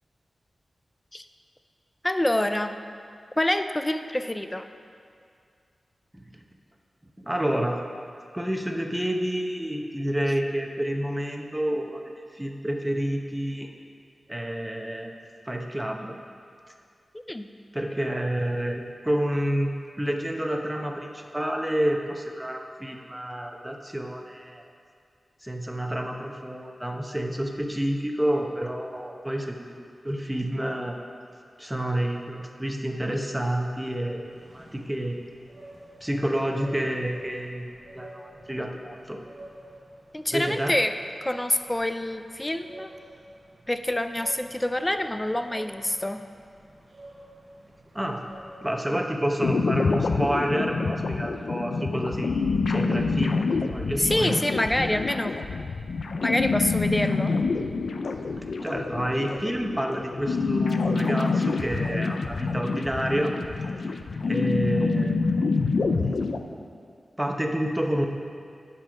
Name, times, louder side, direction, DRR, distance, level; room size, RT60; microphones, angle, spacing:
voice 1, 2.0-2.8 3.4-4.7 17.3-17.5 40.1-40.9 41.2-42.9 43.7-46.2 54.0-55.3 56.2-57.3, left 1 dB, 20° left, 9 dB, 0.5 m, -26 dB
voice 2, 7.2-7.8 8.3-12.0 12.3-13.7 14.3-15.1 15.5-16.2 17.7-24.6 25.4-31.0 31.6-35.2 36.0-39.2 40.3-40.7 47.9-48.2 48.6-53.4 53.7-54.4 58.6-63.3 64.3-65.3 67.2-68.1, right 1 dB, 10° right, 3 dB, 0.9 m, -29 dB
sound 1, 34.0-51.5, right 1 dB, 75° right, 1.9 m, -49 dB
sound 2, 49.4-66.4, left 4 dB, 80° left, 0.5 m, -26 dB
10.5 x 5.6 x 5.1 m, 2.3 s
cardioid pair, 55°, 0 cm